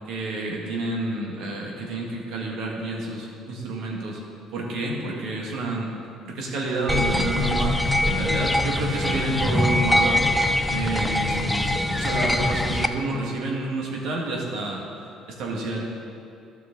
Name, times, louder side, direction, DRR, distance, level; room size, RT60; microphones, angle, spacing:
voice 1, 0.1-4.2 4.5-5.9 6.2-10.2 10.7-14.9 15.4-15.8, right 2 dB, 75° right, -1 dB, 1.7 m, -29 dB
sound 1, 6.8-12.5, left 4 dB, 40° left, 1.8 m, -31 dB
sound 2, 6.9-12.9, left 1 dB, 10° left, 0.5 m, -23 dB
12.0 x 6.1 x 3.9 m, 2.6 s
supercardioid pair, 80°, 0 cm